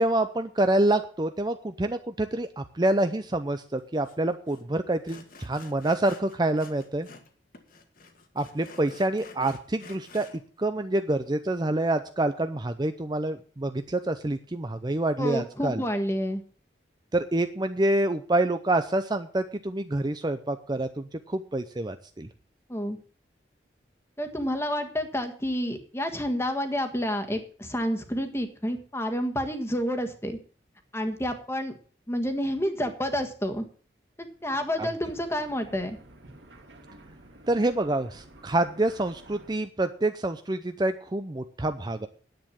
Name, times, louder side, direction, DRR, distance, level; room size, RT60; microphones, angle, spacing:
voice 1, 0.0-7.1 8.4-10.3 10.6-15.8 17.1-22.3 34.8-34.9 37.5-42.1, right 1 dB, 25° right, 9 dB, 0.6 m, -27 dB
Sawing, 4.0-4.2 4.5-4.6 5.1-7.3 7.5-10.4, left 3 dB, 50° left, 1.8 m, -50 dB
voice 2, 15.2-16.4 22.7-23.0 24.2-30.4 30.9-31.8 32.1-33.6 34.2-36.0, equal, 15° left, 7 dB, 1.5 m, -29 dB
sound 1, 34.2-39.6, right 1 dB, 80° right, 2.3 m, -51 dB
10.5 x 8.6 x 7.3 m, 0.42 s
head